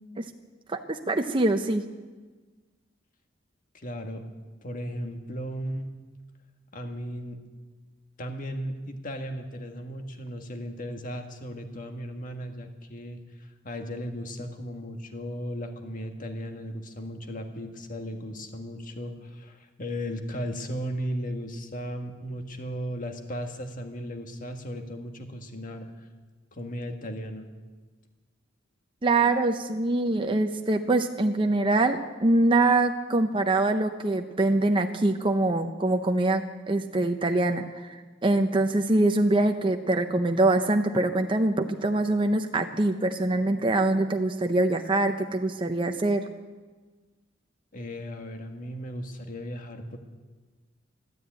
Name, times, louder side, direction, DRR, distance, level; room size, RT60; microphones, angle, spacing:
voice 1, 0.7-1.8 29.0-46.3, right 2 dB, 25° right, 5 dB, 0.7 m, -24 dB
voice 2, 3.7-4.2 4.6-5.9 6.7-7.4 8.2-26.1 26.5-27.5 47.7-50.0, equal, 45° left, 5 dB, 1.6 m, -36 dB
13.0 x 12.5 x 8.9 m, 1.3 s
head